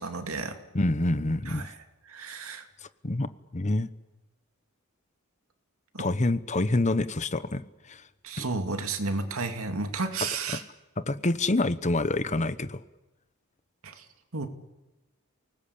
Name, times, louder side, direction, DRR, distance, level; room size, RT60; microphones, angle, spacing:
voice 1, 0.0-0.6 1.5-1.8 2.1-2.7 5.9-6.1 8.2-10.6 13.8-14.0 14.3-14.5, right 3 dB, 90° right, 7 dB, 2.5 m, -32 dB
voice 2, 0.7-1.7 3.0-3.9 6.0-7.6 7.9-8.0 11.1-12.8, left 2 dB, 35° left, 13 dB, 1.0 m, -26 dB
28.5 x 19.5 x 8.6 m, 1.1 s
head